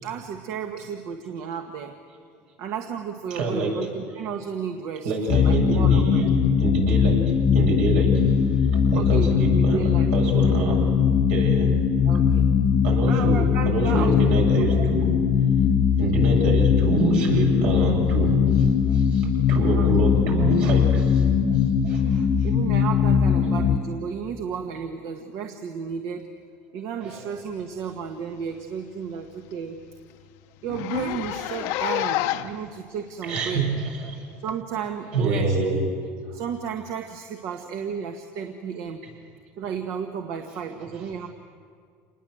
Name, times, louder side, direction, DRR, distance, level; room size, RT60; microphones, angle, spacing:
voice 1, 0.0-2.0 2.6-5.1 5.4-6.2 8.9-10.1 12.0-12.5 13.0-14.4 19.7-19.9 22.0-26.3 26.7-29.8 30.6-33.6 34.4-35.6 36.3-39.0 39.6-41.3, right 7 dB, 65° right, 4 dB, 1.5 m, -33 dB
voice 2, 3.3-3.8 5.0-8.2 8.7-10.8 11.3-11.7 12.8-15.1 16.0-21.2 21.5-21.6 21.8-22.0 23.3-23.4 27.0-27.3 33.2-34.2 35.1-35.8 40.5-40.6 40.9-41.0, right 3 dB, 85° right, -1 dB, 7.6 m, -26 dB
sound 1, 5.3-23.8, left 7 dB, 50° left, 1.1 m, -20 dB
Zipper (clothing), 28.0-28.2 28.6-28.7 29.0-29.1 29.5-29.6 29.8-30.0 30.6-32.6 33.4-33.5 34.5-34.6, left 13 dB, 75° left, 0.9 m, -28 dB
27.5 x 20.0 x 7.9 m, 2.1 s
supercardioid pair, 120°, 6 cm